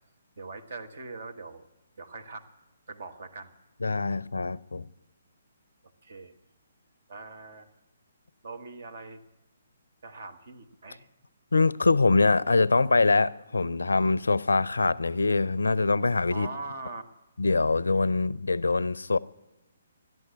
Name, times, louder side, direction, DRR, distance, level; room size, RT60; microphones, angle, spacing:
voice 1, 0.4-1.6 2.0-2.4 2.9-3.5 6.0-6.3 7.1-7.7 8.4-9.2 10.0-11.0 16.3-17.0, right 3 dB, 55° right, 1.4 m, -41 dB
voice 2, 3.8-4.9 11.5-16.5 17.4-19.2, left 3 dB, 75° left, 0.4 m, -24 dB
13.5 x 11.0 x 8.3 m
figure-of-eight pair, 135°, 0 cm